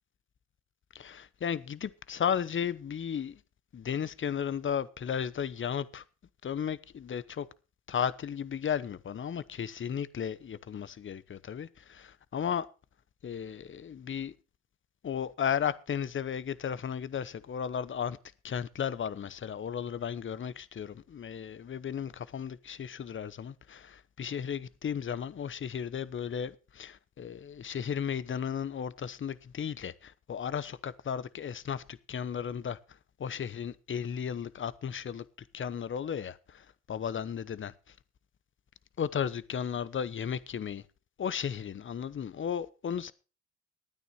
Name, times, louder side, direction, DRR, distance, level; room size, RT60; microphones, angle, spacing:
voice 1, 0.9-3.4 3.7-6.0 6.4-7.5 7.9-12.7 13.2-14.3 15.0-18.2 18.4-32.8 33.2-35.2 35.5-37.7 39.0-40.8 41.2-43.1, left 8 dB, 40° left, 1.0 m, -34 dB
13.0 x 9.4 x 5.7 m
cardioid pair, 90°, 30 cm